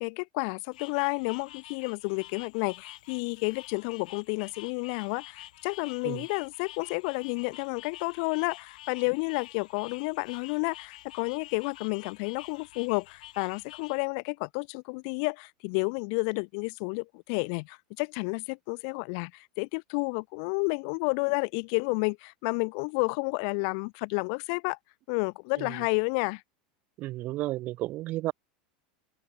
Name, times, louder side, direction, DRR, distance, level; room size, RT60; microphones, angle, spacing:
voice 1, 0.0-24.8 25.1-26.4, left 39 dB, 55° left, 1.0 m, -31 dB
sound 1, 0.7-14.1, left 15 dB, 85° left, 4.8 m, -49 dB
voice 2, 27.0-28.3, right 17 dB, 40° right, 1.2 m, -33 dB
supercardioid pair, 145°, 4 cm